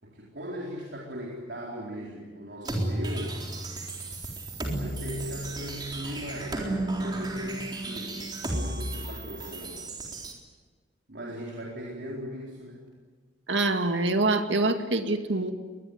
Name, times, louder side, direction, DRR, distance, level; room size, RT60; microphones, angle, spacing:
voice 1, 0.0-3.4 4.6-9.8 11.1-12.8, equal, 65° right, -3 dB, 4.2 m, -39 dB
sound 1, 2.6-10.3, right 1 dB, 25° right, 3.9 m, -33 dB
voice 2, 13.5-15.5, right 2 dB, 85° right, 6 dB, 2.2 m, -25 dB
24.0 x 21.0 x 9.6 m, 1.4 s
head